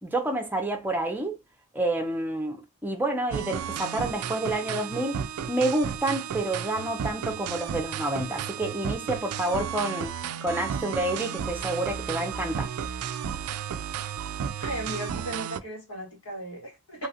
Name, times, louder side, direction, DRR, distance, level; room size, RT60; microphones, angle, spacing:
voice 1, 0.0-1.4 1.7-12.7, right 2 dB, 10° right, 0.6 m, -29 dB
sound 1, 3.3-15.6, right 8 dB, 90° right, 0.3 m, -33 dB
voice 2, 14.6-17.1, right 1 dB, 90° left, 1.9 m, -36 dB
3.1 x 2.4 x 2.7 m
head